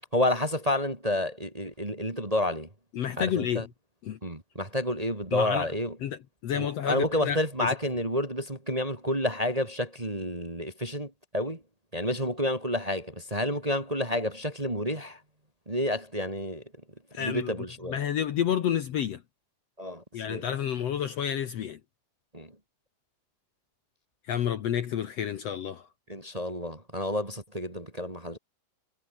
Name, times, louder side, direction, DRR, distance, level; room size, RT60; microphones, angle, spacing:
voice 1, 0.1-2.7 3.2-3.6 4.2-5.9 6.5-11.6 11.9-15.2 15.7-16.6 17.2-18.0 19.8-20.4 22.3-22.5 26.1-28.4, left 1 dB, 15° right, 2.1 m, -30 dB
voice 2, 2.9-3.7 4.0-4.2 5.3-5.7 6.0-7.8 17.1-19.2 20.1-21.8 24.3-25.9, left 9 dB, 60° left, 2.0 m, -30 dB
omnidirectional pair, 3.7 m